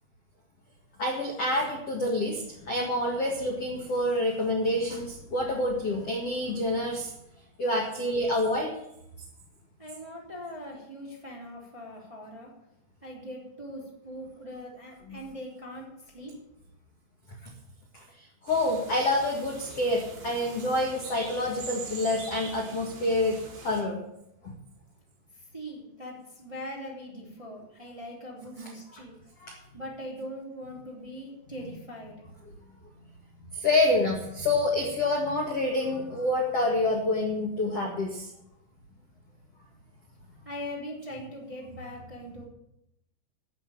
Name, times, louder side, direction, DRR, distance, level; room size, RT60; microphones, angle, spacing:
voice 1, 1.0-7.1 7.6-8.7 15.1-15.2 18.4-24.0 24.4-24.5 29.4-29.5 33.5-38.3, left 1 dB, 50° left, -1 dB, 2.1 m, -27 dB
voice 2, 9.8-12.5 13.0-16.3 25.3-29.1 29.7-32.2 40.4-42.4, equal, 10° right, -3 dB, 2.5 m, -41 dB
sound 1, 18.5-23.8, right 4 dB, 65° right, 5.7 m, -43 dB
11.5 x 8.0 x 9.8 m, 0.81 s
omnidirectional pair, 5.3 m